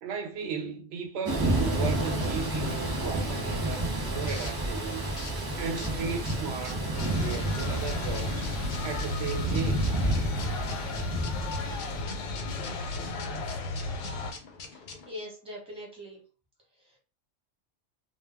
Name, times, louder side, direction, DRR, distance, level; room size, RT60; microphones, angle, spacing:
voice 1, 0.0-5.1 5.6-8.5 8.8-9.9, right 5 dB, 65° right, 0.8 m, -36 dB
Thunder / Rain, 1.3-12.0, right 1 dB, 35° right, 0.4 m, -30 dB
sound 1, 3.8-15.1, left 4 dB, 55° left, 0.6 m, -46 dB
sound 2, 6.9-14.3, left 3 dB, 90° left, 0.9 m, -34 dB
voice 2, 14.7-16.2 16.7-17.0, left 1 dB, 5° right, 0.8 m, -43 dB
2.2 x 2.0 x 3.3 m
omnidirectional pair, 1.3 m